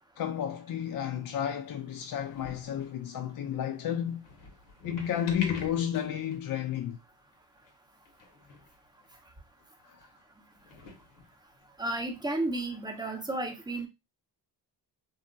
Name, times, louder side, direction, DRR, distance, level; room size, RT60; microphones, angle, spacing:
voice 1, 0.2-4.2 4.8-7.0 9.8-10.0, left 9 dB, 50° left, 0.5 m, -32 dB
sound 1, 0.8-1.4 2.0-2.9 4.0-6.4 6.8-6.9 7.3-7.4 7.6-7.7 8.1-8.8 9.0-9.1 10.0-10.1 10.6-11.7 12.6-12.7, left 3 dB, 75° left, 0.9 m, -46 dB
voice 2, 11.8-13.9, right 2 dB, 10° right, 0.7 m, -32 dB
2.8 x 2.3 x 2.5 m
cardioid pair, 65°, 44 cm